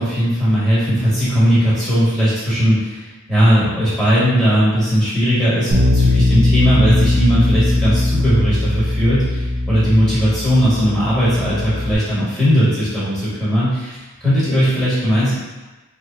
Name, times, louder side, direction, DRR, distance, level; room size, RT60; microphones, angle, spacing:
voice 1, 0.0-3.0 3.3-15.3, equal, ahead, -11 dB, 1.3 m, -17 dB
Bass guitar, 5.7-12.0, left 1 dB, 55° right, 0.6 m, -18 dB
3.1 x 2.2 x 3.8 m, 1.2 s
head